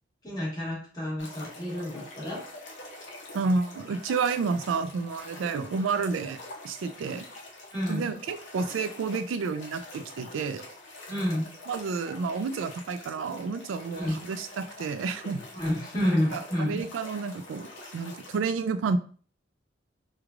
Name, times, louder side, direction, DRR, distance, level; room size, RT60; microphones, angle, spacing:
voice 1, 0.2-2.4 7.7-8.1 11.1-11.5 13.9-14.1 15.5-16.8, left 1 dB, 20° left, -5 dB, 1.2 m, -29 dB
sound 1, 1.2-18.4, left 2 dB, 75° left, 0.7 m, -45 dB
voice 2, 3.3-6.4 6.6-7.3 7.9-10.6 11.7-15.4 16.3-17.7 17.9-19.0, right 4 dB, 80° right, 10 dB, 0.3 m, -30 dB
3.2 x 2.3 x 2.4 m, 0.43 s
head